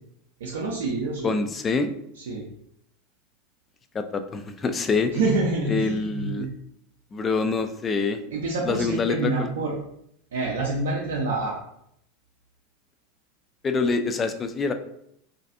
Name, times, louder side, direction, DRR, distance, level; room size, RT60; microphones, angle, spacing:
voice 1, 0.4-1.3 2.1-2.5 5.1-6.5 8.3-9.7 10.3-11.6, right 3 dB, 80° right, -3 dB, 0.4 m, -27 dB
voice 2, 1.2-1.9 3.9-5.1 5.7-6.5 7.1-8.2 8.7-9.5 13.6-14.7, left 4 dB, 25° left, 9 dB, 0.3 m, -25 dB
2.5 x 2.3 x 2.5 m, 0.74 s
hypercardioid pair, 90°, 0 cm